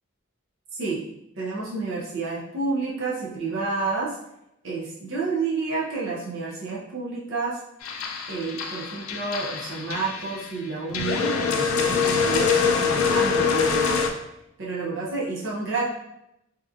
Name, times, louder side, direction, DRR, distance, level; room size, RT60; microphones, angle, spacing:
voice 1, 1.4-4.2 4.6-7.6 8.3-14.1 14.6-15.8, right 3 dB, 65° right, -5 dB, 0.5 m, -30 dB
sound 1, 7.8-10.5 10.9-14.1, left 5 dB, 85° left, 0.3 m, -24 dB
2.8 x 2.4 x 2.3 m, 0.83 s
head